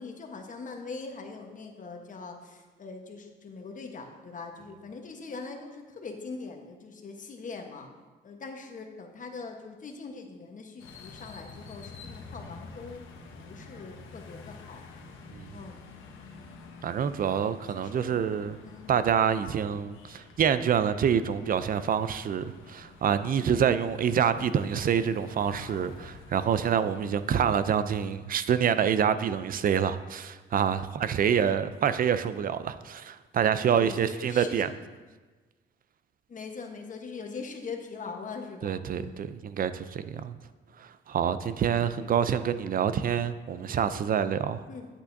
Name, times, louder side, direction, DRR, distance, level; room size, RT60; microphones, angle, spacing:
voice 1, 0.0-7.9 8.2-13.0 13.4-15.0 15.5-15.8 17.3-18.2 18.6-18.9 33.8-34.7 36.3-39.3 44.7-44.9, left 4 dB, 40° left, 1.1 m, -42 dB
sound 1, 10.8-27.6, left 4 dB, 80° left, 1.0 m, -49 dB
voice 2, 16.8-18.6 18.9-34.7 38.6-40.3 40.8-44.6, right 8 dB, 45° right, 0.4 m, -27 dB
8.7 x 8.1 x 2.7 m
cardioid pair, 90°, 20 cm